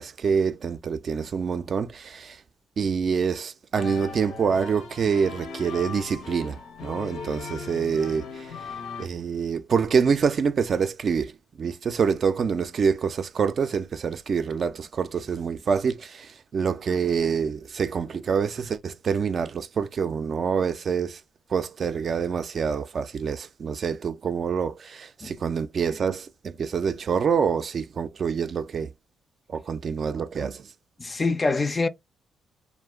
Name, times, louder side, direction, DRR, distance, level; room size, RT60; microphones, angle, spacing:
voice 1, 0.0-2.4 2.8-8.6 9.0-11.3 11.6-21.2 21.5-28.9 29.5-30.7, right 6 dB, 50° right, 0.4 m, -26 dB
sound 1, 3.7-9.1, left 5 dB, 85° left, 0.7 m, -38 dB
voice 2, 31.0-31.9, left 3 dB, 30° left, 0.4 m, -24 dB
2.3 x 2.2 x 3.4 m
cardioid pair, 90°, 0 cm